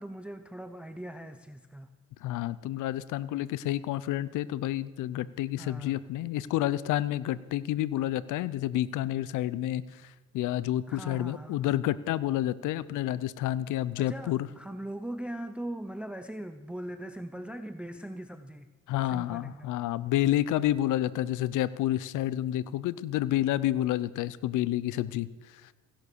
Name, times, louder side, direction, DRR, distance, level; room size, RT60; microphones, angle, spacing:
voice 1, 0.0-1.9 5.6-6.0 10.9-11.7 14.0-18.7 19.0-19.8, right 1 dB, 5° right, 10 dB, 0.7 m, -40 dB
voice 2, 2.2-14.5 18.9-25.6, left 13 dB, 85° left, 18 dB, 0.6 m, -29 dB
16.5 x 11.5 x 6.8 m, 1.2 s
cardioid pair, 90°, 30 cm